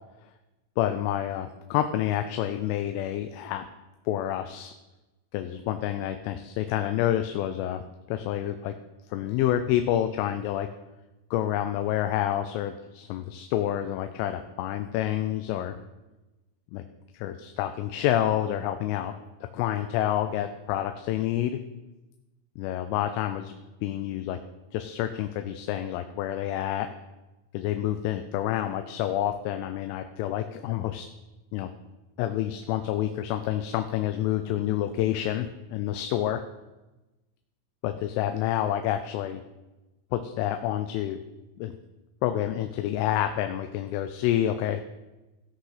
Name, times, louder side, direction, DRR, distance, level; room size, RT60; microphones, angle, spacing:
voice 1, 0.8-3.6 4.1-4.7 5.3-7.8 8.1-8.7 9.1-10.7 11.3-15.8 16.7-16.8 17.1-19.1 19.5-21.6 22.6-24.4 24.7-26.9 27.5-31.1 31.5-31.7 32.2-36.4 37.8-39.4 40.1-41.2 41.6-41.7 42.2-44.9, left 12 dB, 90° left, 7 dB, 3.2 m, -28 dB
16.0 x 6.0 x 5.7 m, 1.0 s
omnidirectional pair, 5.6 m